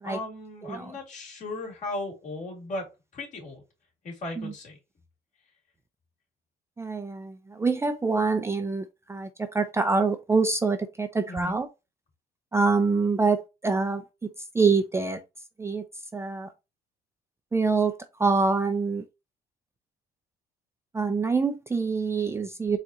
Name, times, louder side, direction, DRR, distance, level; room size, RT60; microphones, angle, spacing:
voice 1, 0.0-2.9 3.1-3.6 4.0-4.8 11.3-11.5, left 2 dB, 45° left, 2.5 m, -36 dB
voice 2, 6.8-11.7 12.5-14.0 14.5-15.2 15.6-15.8 16.1-16.5 17.5-17.9 18.2-19.0 20.9-22.8, right 4 dB, 15° right, 0.5 m, -25 dB
4.6 x 2.5 x 4.0 m
cardioid pair, 110°, 17 cm